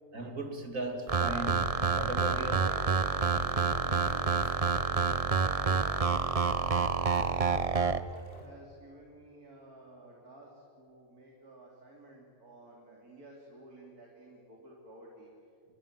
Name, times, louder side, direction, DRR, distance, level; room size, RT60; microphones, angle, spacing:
voice 1, 0.1-2.9, right 2 dB, 60° right, 4 dB, 3.2 m, -38 dB
sound 1, 1.1-8.0, right 5 dB, 30° right, 0.8 m, -28 dB
sound 2, 1.8-8.5, left 1 dB, 35° left, 4.1 m, -53 dB
voice 2, 8.4-15.3, right 1 dB, 90° right, -1 dB, 4.0 m, -54 dB
30.0 x 23.0 x 7.6 m, 2.5 s
omnidirectional pair, 1.5 m